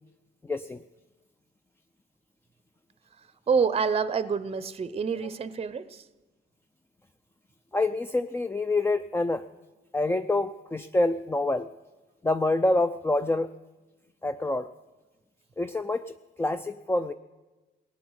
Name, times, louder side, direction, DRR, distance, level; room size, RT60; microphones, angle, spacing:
voice 1, 0.4-0.8 7.7-9.4 9.9-11.7 12.2-13.5 14.2-14.7 15.6-17.1, left 2 dB, 10° left, 10 dB, 0.4 m, -26 dB
voice 2, 3.5-6.0, right 5 dB, 30° right, 15 dB, 0.7 m, -27 dB
16.5 x 9.6 x 7.9 m, 1.2 s
cardioid pair, 90°, 20 cm